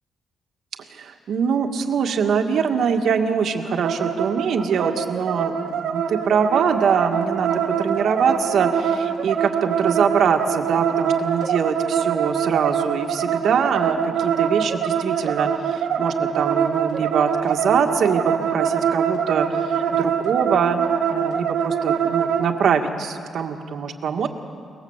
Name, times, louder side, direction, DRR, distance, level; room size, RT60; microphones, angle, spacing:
voice 1, 0.9-20.8 21.1-24.3, right 6 dB, 65° right, 5 dB, 1.8 m, -23 dB
sound 1, 3.8-22.5, right 7 dB, 80° right, 2.0 m, -24 dB
29.0 x 20.0 x 8.1 m, 2.3 s
wide cardioid pair, 165°, 0 cm